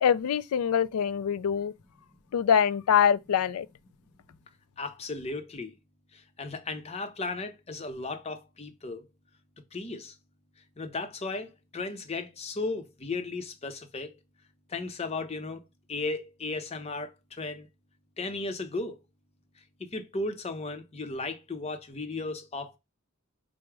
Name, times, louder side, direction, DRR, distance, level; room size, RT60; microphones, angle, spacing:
voice 1, 0.0-1.7 2.3-3.7, left 8 dB, 80° left, 0.3 m, -24 dB
voice 2, 4.8-5.7 6.1-9.0 9.7-10.2 10.8-14.1 14.7-15.6 15.9-17.7 18.2-19.0 19.8-22.8, left 3 dB, 30° left, 0.5 m, -35 dB
4.7 x 2.1 x 4.5 m
head